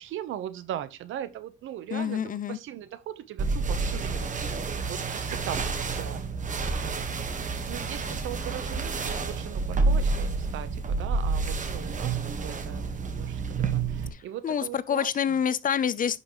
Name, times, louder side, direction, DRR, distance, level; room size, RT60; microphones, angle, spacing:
voice 1, 0.0-4.3 4.9-6.4 6.8-7.1 7.7-15.1, right 11 dB, 80° right, 0.9 m, -39 dB
voice 2, 1.9-2.6 14.1-16.2, left 8 dB, 45° left, 0.6 m, -27 dB
sound 1, 3.4-14.1, right 4 dB, 40° right, 1.4 m, -29 dB
10.0 x 5.7 x 3.1 m
cardioid pair, 90°, 20 cm